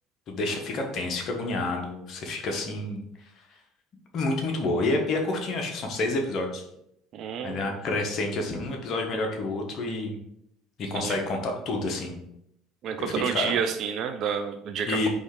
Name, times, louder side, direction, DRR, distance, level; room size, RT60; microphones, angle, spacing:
voice 1, 0.3-3.0 4.1-6.6 7.4-10.2 10.8-12.2 13.0-13.5 14.9-15.1, left 2 dB, 50° left, 2 dB, 1.1 m, -29 dB
voice 2, 7.1-7.8 10.9-11.2 12.8-15.1, right 7 dB, 55° right, 6 dB, 0.4 m, -29 dB
4.2 x 3.2 x 3.6 m, 0.77 s
supercardioid pair, 95°, 0 cm